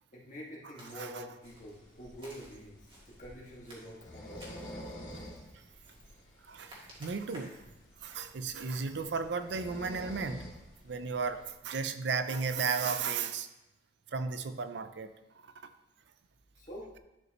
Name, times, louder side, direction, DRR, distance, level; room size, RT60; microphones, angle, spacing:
voice 1, 0.1-4.5 16.6-16.9, equal, 40° left, -4 dB, 1.9 m, -46 dB
Walk footsteps, 0.8-1.1 1.4-1.8 2.2-3.2 3.6-4.7 5.1-5.4 5.8-6.2 6.5-7.7 8.1-8.3, equal, 30° right, 1.8 m, -54 dB
sound 1, 1.4-11.5, equal, 90° left, 2.7 m, -49 dB
voice 2, 6.4-7.5 8.0-10.4 10.8-13.5 14.1-15.1 15.4-15.5, right 5 dB, 70° right, 10 dB, 0.5 m, -34 dB
10.5 x 5.2 x 3.0 m, 0.94 s
head